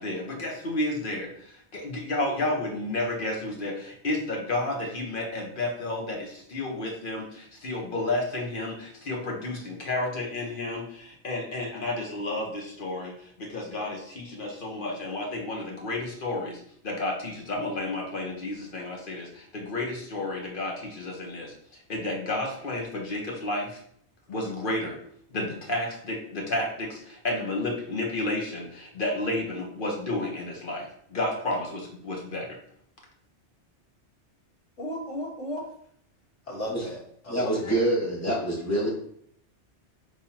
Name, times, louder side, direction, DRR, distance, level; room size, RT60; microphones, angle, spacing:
voice 1, 0.0-23.8 24.3-25.0 25.3-32.6, left 2 dB, 50° left, 0 dB, 1.2 m, -31 dB
voice 2, 34.8-35.6 36.5-37.9 38.7-38.9, equal, 80° left, -4 dB, 1.8 m, -36 dB
voice 3, 37.3-38.9, right 1 dB, 15° left, -6 dB, 1.5 m, -26 dB
5.5 x 3.3 x 2.8 m, 0.66 s
omnidirectional pair, 1.2 m